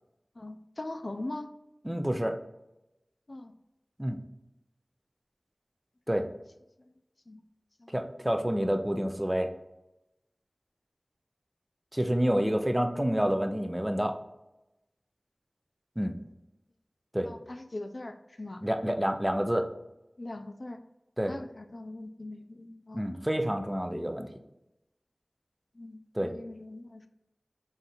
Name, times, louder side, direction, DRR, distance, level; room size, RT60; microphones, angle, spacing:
voice 1, 0.4-1.5 3.3-3.5 6.8-6.9 7.3-7.4 7.8-7.9 17.2-18.6 20.2-20.8 21.3-23.2 25.7-27.1, left 2 dB, 55° left, 6 dB, 0.4 m, -41 dB
voice 2, 1.8-2.4 4.0-4.2 6.1-6.3 7.9-9.5 11.9-14.2 16.0-16.1 17.1-17.3 18.6-19.7 21.2-21.3 22.9-24.3 26.1-26.3, equal, 15° right, 6 dB, 0.5 m, -28 dB
3.6 x 2.7 x 4.1 m, 0.92 s
wide cardioid pair, 55°, 0 cm